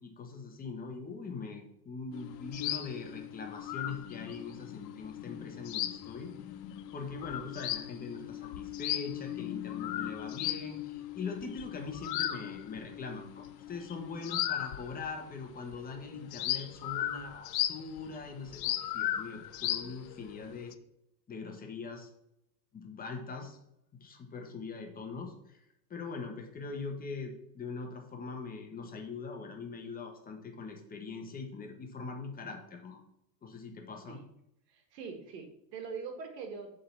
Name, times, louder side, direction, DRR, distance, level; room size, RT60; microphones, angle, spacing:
voice 1, 0.0-6.3 6.9-20.7 21.3-22.1 22.7-23.6 24.0-25.3 25.9-33.0 33.4-34.2, left 4 dB, 15° left, 3 dB, 1.3 m, -42 dB
sound 1, 2.1-15.3 15.6-20.7, left 13 dB, 75° left, 0.8 m, -37 dB
voice 2, 34.7-36.7, right 5 dB, 70° right, 4 dB, 2.0 m, -42 dB
7.5 x 4.0 x 5.8 m, 0.82 s
supercardioid pair, 130°, 50 cm